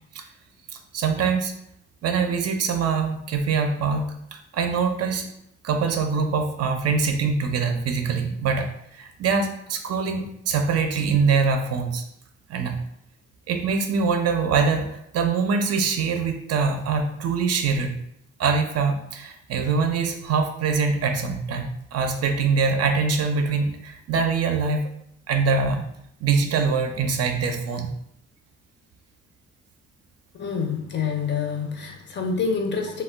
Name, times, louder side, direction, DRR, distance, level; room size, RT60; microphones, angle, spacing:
voice 1, 0.9-1.5 2.0-5.3 5.6-12.0 12.5-12.9 13.5-18.0 18.4-24.9 25.3-25.8 26.2-27.9, right 5 dB, 55° right, 5 dB, 0.4 m, -24 dB
voice 2, 30.4-33.0, left 5 dB, 35° left, 3 dB, 0.5 m, -27 dB
2.2 x 2.1 x 3.3 m, 0.73 s
cardioid pair, 90°, 30 cm